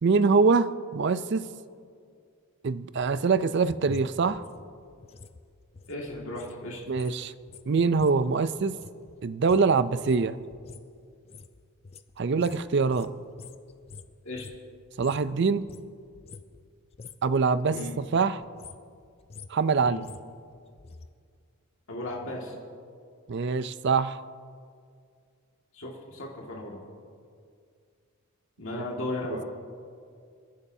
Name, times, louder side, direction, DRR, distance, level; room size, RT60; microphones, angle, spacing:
voice 1, 0.0-1.4 2.6-4.4 6.9-7.3 7.7-8.8 9.2-10.4 12.2-13.1 15.0-15.7 17.2-18.4 19.5-20.0 23.3-24.2 28.8-28.9, right 4 dB, 50° right, 14 dB, 0.4 m, -24 dB
sound 1, 3.2-6.6 6.8-15.3 15.6-16.7 16.9-17.3 17.6-18.0 18.4-21.1 21.4-21.5, left 4 dB, 25° left, 0.4 m, -48 dB
voice 2, 5.9-6.8 14.2-14.5 17.7-17.9 19.8-20.0 21.9-22.6 25.7-26.8 28.6-29.4, left 2 dB, 65° left, -2 dB, 2.0 m, -36 dB
29.0 x 11.0 x 2.7 m, 2.2 s
head